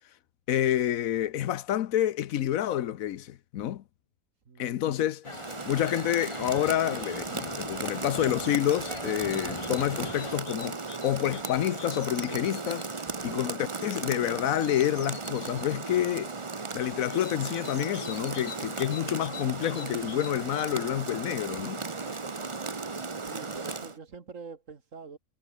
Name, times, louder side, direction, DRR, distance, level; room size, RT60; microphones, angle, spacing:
voice 1, 0.5-3.8 4.6-12.9 13.2-16.3 16.7-21.8, left 11 dB, 90° left, 1.2 m, -28 dB
voice 2, 4.5-5.0 13.1-13.7 21.8-22.7 23.2-25.2, right 5 dB, 65° right, 2.3 m, -46 dB
sound 1, 5.2-10.4, left 2 dB, 20° left, 1.8 m, -41 dB
Rain, 5.3-24.0, right 4 dB, 25° right, 1.0 m, -36 dB
sound 2, 5.9-6.5 7.6-12.9 14.2-15.8 17.1-20.5, left 9 dB, 70° left, 1.3 m, -47 dB
omnidirectional pair, 1.4 m